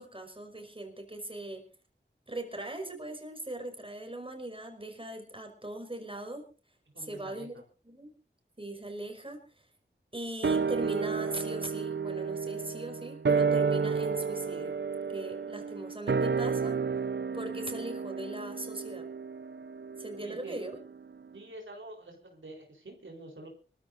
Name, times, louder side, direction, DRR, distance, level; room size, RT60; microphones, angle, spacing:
voice 1, 0.0-1.6 2.3-6.4 7.0-7.5 7.8-8.1 8.6-9.7 10.1-14.8 15.1-16.8 17.3-19.1 20.0-20.8, right 1 dB, 25° right, 3 dB, 5.0 m, -40 dB
voice 2, 6.9-7.6 20.2-20.6 21.3-23.5, right 1 dB, 90° right, 1 dB, 4.1 m, -47 dB
sound 1, 10.4-21.0 21.3-21.4, right 5 dB, 65° right, 0.6 m, -31 dB
25.5 x 14.5 x 2.6 m, 0.36 s
wide cardioid pair, 65°, 19 cm